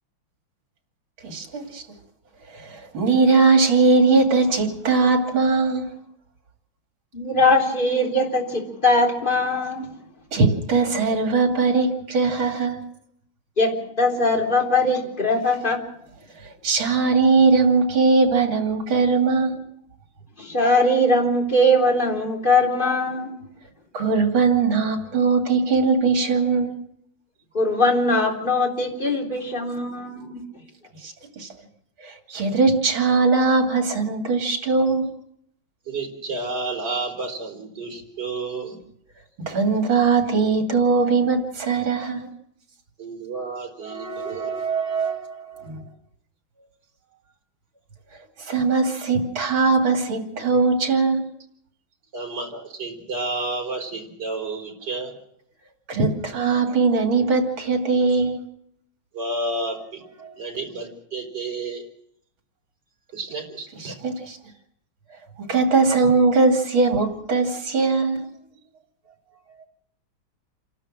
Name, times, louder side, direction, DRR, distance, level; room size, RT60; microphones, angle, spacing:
voice 1, 1.2-1.8 2.5-5.9 10.3-12.8 16.4-19.6 23.9-26.8 31.0-31.5 32.0-35.1 39.5-42.3 43.8-45.8 48.4-51.2 55.9-58.4 60.2-60.3 63.8-64.4 65.5-68.2, right 4 dB, 70° right, 4 dB, 3.6 m, -20 dB
voice 2, 7.1-9.9 13.6-15.8 20.4-23.3 27.5-30.4, left 1 dB, 20° left, 0 dB, 3.8 m, -21 dB
voice 3, 35.9-38.8 43.0-44.5 52.1-55.1 59.1-60.0 60.4-61.8 63.1-64.0, right 3 dB, 55° right, 3 dB, 4.7 m, -31 dB
28.5 x 12.5 x 7.5 m, 0.75 s
omnidirectional pair, 2.3 m